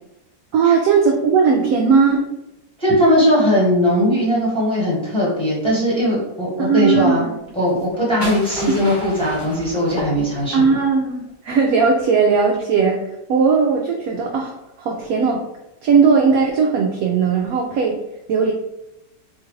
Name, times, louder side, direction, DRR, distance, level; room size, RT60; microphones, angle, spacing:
voice 1, 0.5-2.2 6.6-7.3 10.5-13.0 13.3-15.4 15.8-18.0 18.3-18.5, right 5 dB, 70° right, 1 dB, 0.8 m, -17 dB
voice 2, 2.8-7.2 7.5-10.6, equal, 5° left, -7 dB, 1.1 m, -19 dB
sound 1, 7.7-10.7, left 1 dB, 45° left, 1.6 m, -32 dB
4.2 x 2.4 x 3.1 m, 0.89 s
omnidirectional pair, 1.9 m